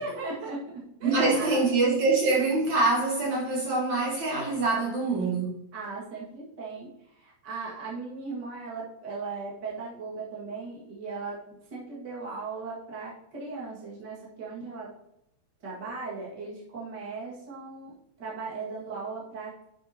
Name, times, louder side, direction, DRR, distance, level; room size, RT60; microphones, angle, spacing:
voice 1, 0.0-1.6 5.7-14.9 15.6-19.5, right 4 dB, 40° right, 1.5 m, -38 dB
voice 2, 1.0-5.6, right 3 dB, 60° right, 2.1 m, -25 dB
10.5 x 7.4 x 2.9 m
omnidirectional pair, 4.8 m